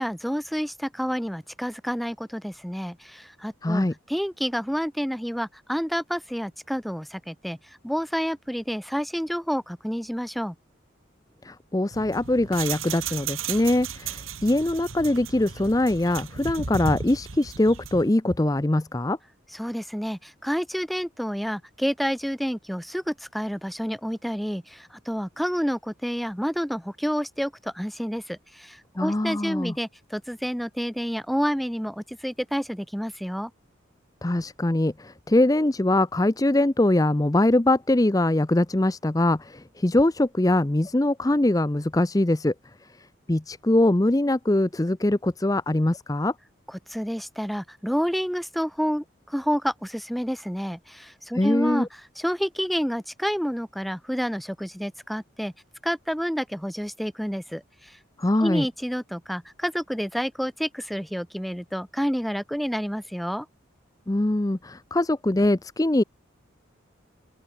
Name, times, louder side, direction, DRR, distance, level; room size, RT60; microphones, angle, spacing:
voice 1, 0.0-7.6 7.8-10.5 19.5-33.5 46.7-55.5 55.8-58.0 58.4-63.5, equal, ahead, 2.6 m, -29 dB
voice 2, 3.6-3.9 11.4-19.2 29.0-29.7 34.2-42.5 43.3-46.3 51.3-51.9 58.2-58.7 64.1-66.0, left 1 dB, 15° left, 0.5 m, -22 dB
sound 1, 11.9-18.1, right 6 dB, 90° right, 1.9 m, -35 dB
open air
head